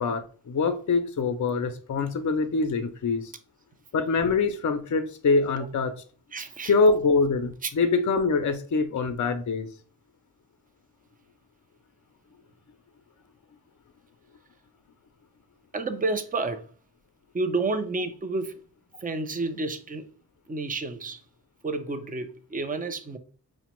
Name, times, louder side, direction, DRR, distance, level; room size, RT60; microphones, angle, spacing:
voice 1, 0.0-3.3 3.9-6.0 6.7-9.7, left 4 dB, 45° left, 0.6 m, -24 dB
voice 2, 6.3-6.7 7.6-7.7 15.7-16.7 17.3-18.6 19.0-20.1 20.5-21.2 21.6-23.2, right 3 dB, 20° right, 0.5 m, -30 dB
4.8 x 2.2 x 3.0 m
cardioid pair, 50°, 42 cm